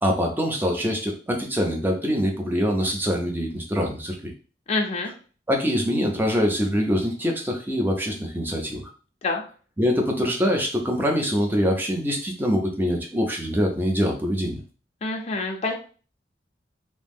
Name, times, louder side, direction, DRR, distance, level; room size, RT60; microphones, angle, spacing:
voice 1, 0.0-4.3 5.5-8.8 9.8-14.6, equal, 10° right, 1 dB, 0.6 m, -24 dB
voice 2, 4.7-5.1 9.2-9.4 15.0-15.7, left 3 dB, 35° left, 2 dB, 0.5 m, -26 dB
2.8 x 2.0 x 3.4 m, 0.38 s
head